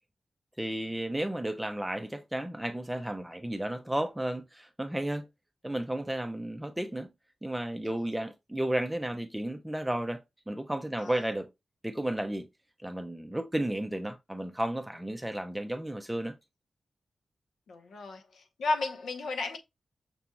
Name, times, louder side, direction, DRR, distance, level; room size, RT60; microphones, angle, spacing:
voice 1, 0.6-5.2 5.6-7.1 7.4-11.5 11.8-12.5 12.8-16.3, right 1 dB, 5° right, 0.4 m, -33 dB
voice 2, 17.7-19.6, left 3 dB, 90° left, 0.7 m, -33 dB
5.9 x 2.8 x 2.3 m
wide cardioid pair, 130°, 0 cm